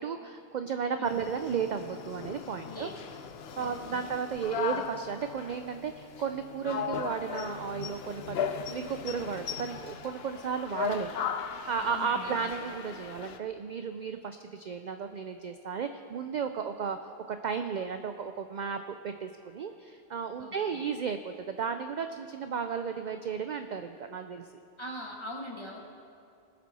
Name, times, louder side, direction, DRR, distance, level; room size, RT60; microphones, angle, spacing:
voice 1, 0.0-2.9 3.6-24.5, right 6 dB, 60° right, 8 dB, 0.5 m, -34 dB
sound 1, 1.0-13.4, left 7 dB, 70° left, 0.9 m, -38 dB
voice 2, 3.6-4.1 11.8-12.6 20.4-20.8 24.8-25.8, left 1 dB, 25° left, -1 dB, 1.5 m, -42 dB
19.0 x 7.4 x 4.2 m, 2.6 s
omnidirectional pair, 1.1 m